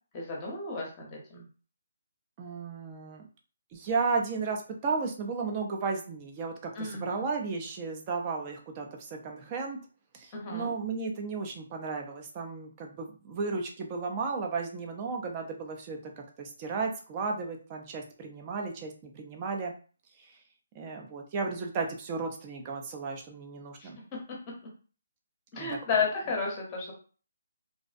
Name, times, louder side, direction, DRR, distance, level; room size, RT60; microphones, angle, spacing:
voice 1, 0.1-1.4 6.7-7.2 10.3-10.7 23.8-23.9 25.5-26.9, left 4 dB, 20° left, -1 dB, 0.7 m, -32 dB
voice 2, 2.4-3.2 3.7-9.8 10.1-19.7 20.7-24.0 25.6-25.8, right 4 dB, 25° right, 2 dB, 0.4 m, -34 dB
2.5 x 2.0 x 2.4 m, 0.38 s
hypercardioid pair, 165°, 0 cm